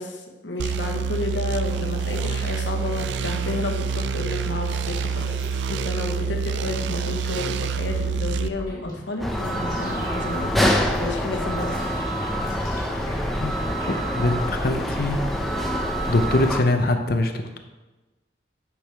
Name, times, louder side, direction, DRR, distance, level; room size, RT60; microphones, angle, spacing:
voice 1, 0.0-5.4 5.7-11.8, left 2 dB, 85° left, 3 dB, 1.1 m, -31 dB
sound 1, 0.6-8.5, right 6 dB, 75° right, 0.3 m, -27 dB
sound 2, 1.7-3.3 3.6-16.1, left 1 dB, 20° left, 2.3 m, -42 dB
sound 3, 9.2-16.6, equal, ahead, 0.6 m, -25 dB
voice 2, 14.2-15.2 16.1-17.6, left 2 dB, 55° left, 6 dB, 0.6 m, -22 dB
8.6 x 6.2 x 3.4 m, 1.1 s
head